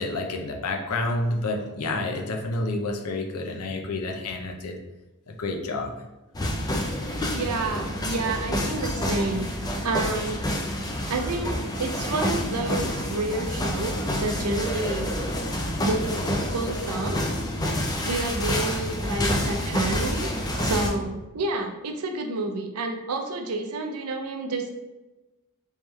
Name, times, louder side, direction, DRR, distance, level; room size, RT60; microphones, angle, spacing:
voice 1, 0.0-4.7 5.3-5.9 10.5-10.6 10.9-11.0, left 2 dB, 90° left, 3 dB, 0.6 m, -29 dB
sound 1, 6.3-20.9, left 1 dB, 20° left, 0.4 m, -28 dB
voice 2, 7.3-10.4 11.1-15.2 15.8-16.2 16.5-17.2 18.1-20.3 20.6-24.7, right 2 dB, 85° right, 4 dB, 0.5 m, -29 dB
3.5 x 3.1 x 3.1 m, 1.1 s
head